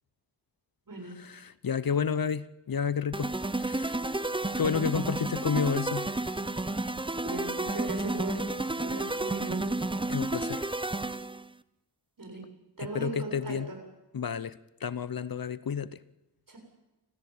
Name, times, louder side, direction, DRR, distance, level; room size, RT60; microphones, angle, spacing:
voice 1, 1.1-4.2 4.5-6.2 10.1-10.6 12.8-13.7 14.1-16.0, left 6 dB, 55° left, 17 dB, 0.9 m, -31 dB
sound 1, 3.1-11.5, right 2 dB, 10° right, 0.9 m, -31 dB
voice 2, 7.2-9.8 12.2-12.4 12.8-13.8 16.5-16.6, right 2 dB, 50° right, 3 dB, 7.3 m, -38 dB
29.5 x 14.5 x 8.8 m, 0.97 s
wide cardioid pair, 70°, 42 cm